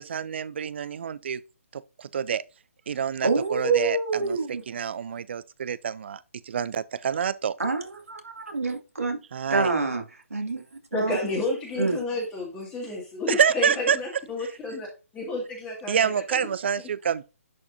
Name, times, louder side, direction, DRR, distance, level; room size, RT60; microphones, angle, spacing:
voice 1, 0.0-1.4 1.7-2.4 2.9-6.2 6.5-7.5 9.3-9.7 13.3-14.0 15.9-17.2, right 7 dB, 50° right, 0.4 m, -27 dB
voice 2, 3.2-4.6 7.6-9.2 9.5-10.0 10.3-10.6 10.9-11.4 11.8-12.0, right 3 dB, 75° right, 2.3 m, -26 dB
voice 3, 10.9-14.9 15.1-16.4, left 2 dB, 15° left, 2.1 m, -31 dB
10.5 x 4.8 x 2.6 m
figure-of-eight pair, 135°, 8 cm